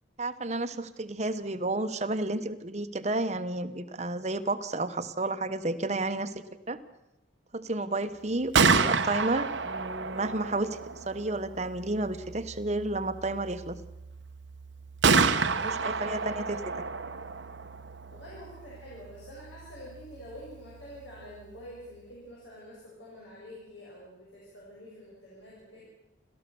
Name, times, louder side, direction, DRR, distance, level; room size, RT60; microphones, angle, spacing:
voice 1, 0.2-6.8 7.5-10.8 11.1-13.8 15.6-16.6, right 2 dB, 35° right, 10 dB, 1.1 m, -31 dB
Gunshot gunfire, 8.3-22.1, right 4 dB, 70° right, 1.0 m, -31 dB
voice 2, 15.3-16.7 18.1-25.8, equal, 70° left, -6 dB, 7.4 m, -47 dB
29.5 x 13.5 x 7.0 m, 0.99 s
head